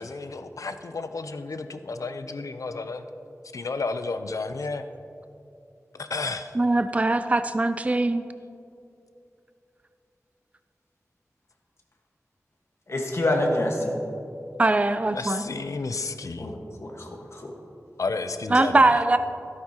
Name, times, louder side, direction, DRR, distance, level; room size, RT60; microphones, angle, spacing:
voice 1, 0.0-3.0 3.5-4.8 5.9-6.5 15.1-16.5 18.0-18.7, left 3 dB, 75° left, 9 dB, 0.5 m, -32 dB
voice 2, 6.5-8.2 14.6-15.4 18.5-19.2, right 2 dB, 25° right, 10 dB, 0.4 m, -21 dB
voice 3, 12.9-14.0 16.4-17.5, left 1 dB, 55° left, 1 dB, 1.4 m, -27 dB
13.0 x 12.0 x 2.9 m, 2.7 s
wide cardioid pair, 80°, 6 cm